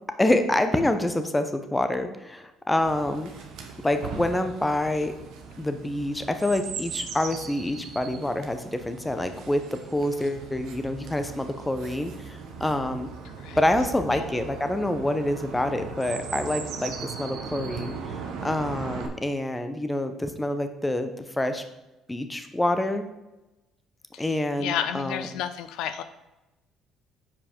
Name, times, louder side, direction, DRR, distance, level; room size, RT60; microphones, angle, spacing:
voice 1, 0.2-3.3 3.8-5.1 5.6-13.1 13.6-18.0 18.4-21.1 21.4-21.6 22.1-23.0 24.2-25.3, left 1 dB, 15° left, 8 dB, 0.9 m, -27 dB
Chirp tweet, 2.8-19.1, right 6 dB, 70° right, 1.0 m, -39 dB
voice 2, 24.1-26.0, left 10 dB, 70° left, 11 dB, 0.5 m, -32 dB
7.3 x 4.9 x 4.5 m, 1.0 s
hypercardioid pair, 60°, 0 cm